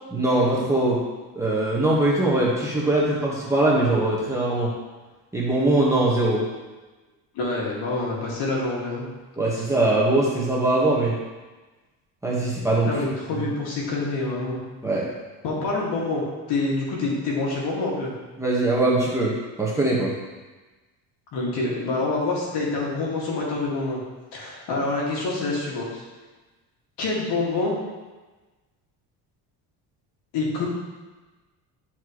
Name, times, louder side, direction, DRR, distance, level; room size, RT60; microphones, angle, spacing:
voice 1, 0.1-1.0 1.3-4.7 5.3-6.4 9.4-11.1 12.2-12.9 14.8-15.1 18.4-19.3 19.6-20.1, right 2 dB, 5° right, -6 dB, 1.5 m, -21 dB
voice 2, 7.3-9.0 12.9-14.6 15.4-16.2 16.5-18.1 21.3-24.0 24.3-26.0 27.0-27.7 30.3-30.6, left 3 dB, 70° left, -4 dB, 2.3 m, -26 dB
10.5 x 4.5 x 3.2 m, 1.2 s
cardioid pair, 125°, 42 cm